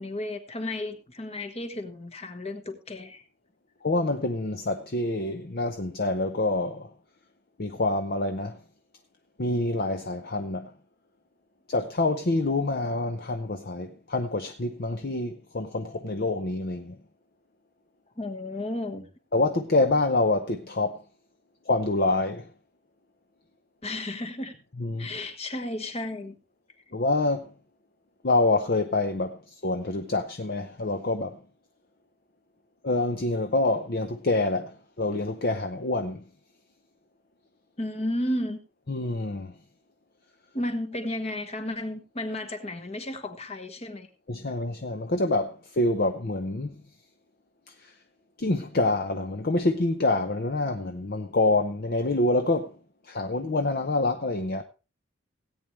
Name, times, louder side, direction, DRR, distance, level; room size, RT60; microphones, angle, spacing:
voice 1, 0.0-3.2 18.2-19.1 23.8-24.5 25.0-26.3 37.8-38.6 40.5-44.1, left 1 dB, 30° left, 1.3 m, -33 dB
voice 2, 3.8-6.9 7.6-8.6 9.4-10.7 11.7-17.0 19.3-21.0 21.7-22.5 24.8-25.1 26.9-27.5 28.2-31.4 32.8-36.2 38.9-39.5 44.3-46.7 47.8-47.9 48.4-52.7 53.1-54.6, left 2 dB, 50° left, 0.7 m, -26 dB
17.5 x 8.9 x 3.2 m
head